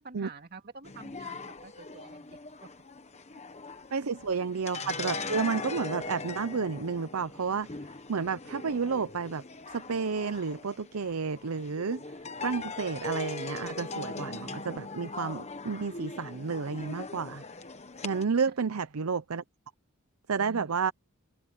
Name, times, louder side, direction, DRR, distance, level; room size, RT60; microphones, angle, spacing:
voice 1, 0.0-2.7 4.4-4.5 18.7-19.0 20.4-20.9, right 3 dB, 50° right, 2.2 m, -49 dB
sound 1, 0.8-18.2, left 3 dB, 30° left, 1.2 m, -40 dB
voice 2, 3.9-7.7 8.1-12.0 12.4-17.4 18.0-19.4 20.3-20.9, right 5 dB, 90° right, 0.7 m, -31 dB
head